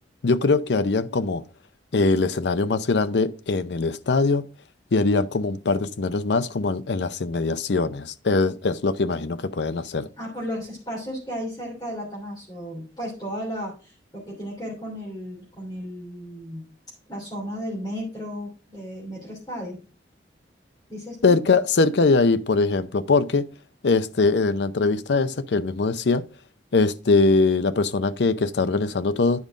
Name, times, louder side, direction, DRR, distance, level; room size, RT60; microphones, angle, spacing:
voice 1, 0.2-1.4 1.9-4.5 4.9-10.1 21.2-23.5 23.8-26.2 26.7-29.4, left 3 dB, 70° left, 0.6 m, -22 dB
voice 2, 10.2-16.6 17.1-19.8 20.9-21.3, equal, 25° left, 3.1 m, -34 dB
9.6 x 5.2 x 4.8 m
head